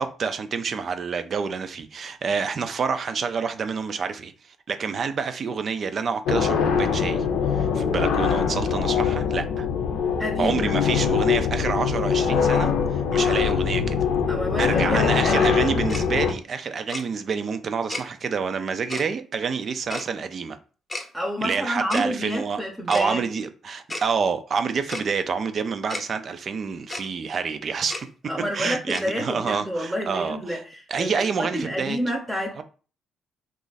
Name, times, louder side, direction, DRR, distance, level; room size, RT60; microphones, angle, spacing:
voice 1, 0.0-7.3 7.5-9.7 10.4-14.0 14.6-20.6 21.4-22.6 22.9-28.0 28.5-30.6 30.9-32.0 32.6-32.7, right 5 dB, 50° right, 0.4 m, -28 dB
sound 1, 6.3-16.3, left 6 dB, 90° left, 0.5 m, -23 dB
voice 2, 10.2-10.6 14.3-15.7 21.1-23.2 28.3-32.6, equal, 10° right, 0.7 m, -29 dB
Tick-tock, 15.9-16.0 16.9-17.0 17.9-18.0 18.9-19.0 19.9-20.1 20.9-21.1 21.9-22.1 22.9-23.1 23.9-24.1 24.9-25.0 25.9-26.0 26.9-27.1 27.9-28.0 28.9-29.1, left 2 dB, 20° left, 0.7 m, -32 dB
3.0 x 2.4 x 4.0 m
cardioid pair, 90°, 0 cm